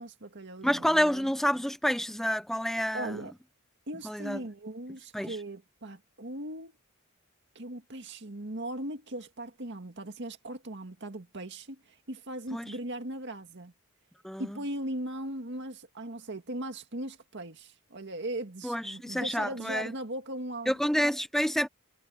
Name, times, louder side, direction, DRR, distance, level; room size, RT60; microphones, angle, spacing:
voice 1, 0.0-1.3 2.9-3.3 3.9-6.7 7.6-13.7 14.4-20.7, right 1 dB, 55° right, 2.0 m, -39 dB
voice 2, 0.6-3.2 4.0-4.4 5.1-5.4 12.5-12.7 14.2-14.6 18.6-19.9 20.7-21.7, equal, ahead, 1.1 m, -28 dB
head